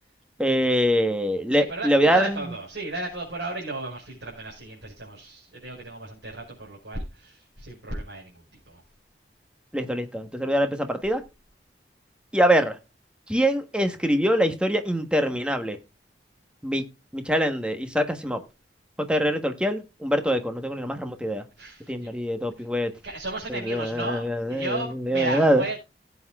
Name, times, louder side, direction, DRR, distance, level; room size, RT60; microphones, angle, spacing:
voice 1, 0.4-2.4 9.7-11.2 12.3-12.8 13.3-15.8 16.6-16.8 17.1-18.4 19.1-21.4 21.9-22.9 23.5-25.6, equal, 5° right, 1.1 m, -24 dB
voice 2, 1.5-8.3 8.7-8.8 21.6-22.1 23.0-25.8, right 2 dB, 80° right, 5.1 m, -34 dB
18.0 x 8.0 x 2.3 m
head